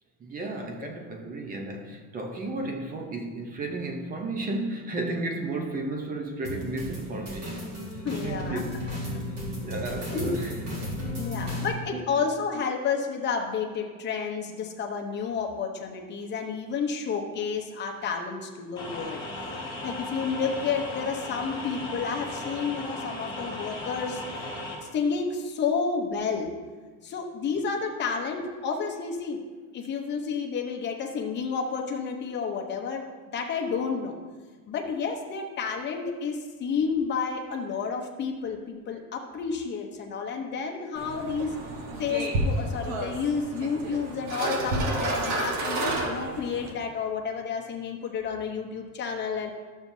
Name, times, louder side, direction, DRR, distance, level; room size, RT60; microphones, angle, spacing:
voice 1, 0.2-9.2 9.6-11.2 11.9-12.0, right 2 dB, 20° right, 4 dB, 0.7 m, -34 dB
sound 1, 6.4-11.7, left 1 dB, 35° right, 1.8 m, -34 dB
voice 2, 8.0-8.6 10.1-10.3 11.2-19.2 19.8-24.2 24.9-26.5 27.0-29.4 29.7-33.1 33.3-34.2 34.7-41.5 42.0-49.5, left 5 dB, 25° left, 2 dB, 0.8 m, -30 dB
sound 2, 18.8-24.8, left 2 dB, 10° left, 1.8 m, -36 dB
sound 3, 41.0-46.7, right 2 dB, 70° right, 1.4 m, -30 dB
12.0 x 7.2 x 2.7 m, 1.4 s
cardioid pair, 165°, 42 cm